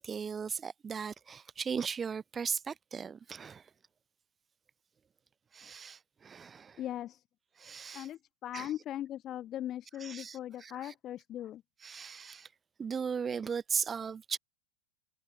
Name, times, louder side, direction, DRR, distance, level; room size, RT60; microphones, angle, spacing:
voice 1, 0.0-3.6 5.5-6.8 7.6-8.1 8.5-8.7 10.0-10.9 11.8-12.5 12.8-14.4, right 6 dB, 20° right, 0.4 m, -37 dB
voice 2, 6.8-7.2 7.9-11.6, left 12 dB, 30° left, 0.5 m, -39 dB
figure-of-eight pair, 90°, 0 cm